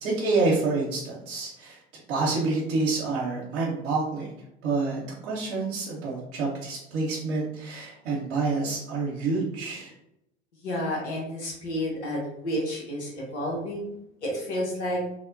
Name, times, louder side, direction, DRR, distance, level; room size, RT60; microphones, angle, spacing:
voice 1, 0.0-1.8 2.1-4.3 4.6-9.9, right 3 dB, 70° right, -5 dB, 0.8 m, -28 dB
voice 2, 10.6-15.0, left 1 dB, 85° left, -3 dB, 0.9 m, -31 dB
3.1 x 2.1 x 2.5 m, 0.82 s
hypercardioid pair, 75°, 33 cm